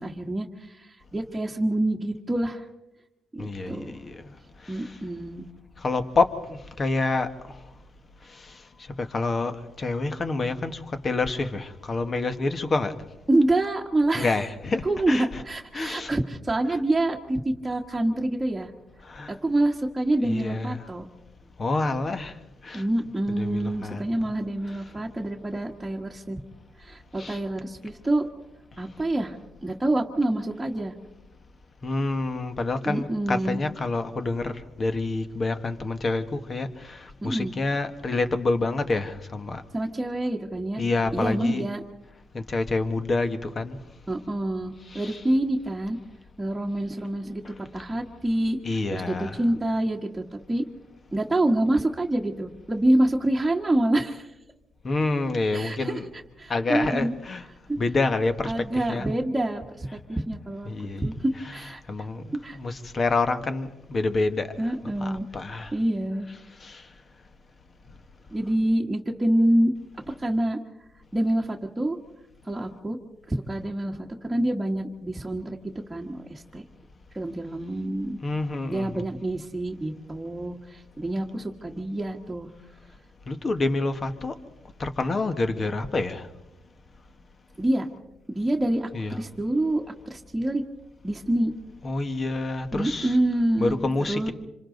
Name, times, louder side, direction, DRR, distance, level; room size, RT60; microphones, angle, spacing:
voice 1, 0.0-2.6 3.3-3.9 4.7-5.4 13.3-14.3 14.8-18.7 19.3-21.0 22.7-26.4 26.8-28.3 28.8-29.4 29.6-30.9 32.8-33.6 37.2-37.5 39.7-40.8 41.1-41.8 44.1-46.0 46.4-50.6 51.1-54.3 55.5-56.0 56.4-57.1 57.7-57.8 58.4-60.7 61.0-61.8 62.4-62.6 64.6-65.3 65.7-66.3 68.3-69.7 70.2-70.6 71.1-72.0 72.5-73.0 73.3-75.6 75.9-76.6 77.1-78.2 78.7-82.5 87.6-87.9 88.3-90.6 91.0-91.5 92.7-93.8 94.1-94.3, right 1 dB, 10° right, 1.6 m, -26 dB
voice 2, 3.4-4.3 4.6-5.0 5.8-7.6 8.2-13.0 14.1-15.4 15.7-16.1 19.0-19.4 20.2-20.8 21.6-22.4 22.6-22.8 23.3-24.0 27.2-27.4 31.8-39.6 40.8-41.7 42.3-43.8 44.9-45.2 47.4-47.5 48.6-49.4 54.8-56.1 56.5-57.4 57.8-59.1 60.6-61.1 61.4-61.5 61.9-64.7 65.0-65.7 66.6-66.9 78.2-79.0 83.3-84.3 84.8-86.3 88.9-89.2 91.8-93.2 93.6-94.3, left 3 dB, 35° left, 1.6 m, -28 dB
26.5 x 26.0 x 4.0 m
cardioid pair, 90°, 0 cm